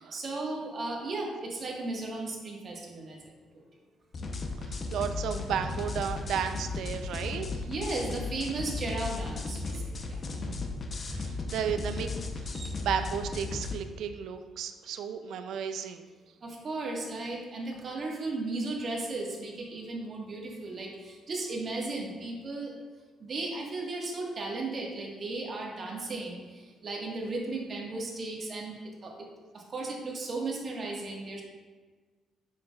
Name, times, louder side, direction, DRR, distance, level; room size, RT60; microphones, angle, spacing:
voice 1, 0.0-3.6 7.7-10.2 10.5-10.6 12.5-12.7 16.4-22.7 23.2-29.1 29.5-31.4, right 2 dB, 45° right, -1 dB, 1.5 m, -35 dB
sound 1, 4.1-13.7, left 3 dB, 45° left, 0.8 m, -35 dB
voice 2, 4.3-7.6 11.1-12.1 12.8-16.0, right 7 dB, 80° right, 9 dB, 0.5 m, -33 dB
7.5 x 6.4 x 2.4 m, 1.4 s
cardioid pair, 90°, 0 cm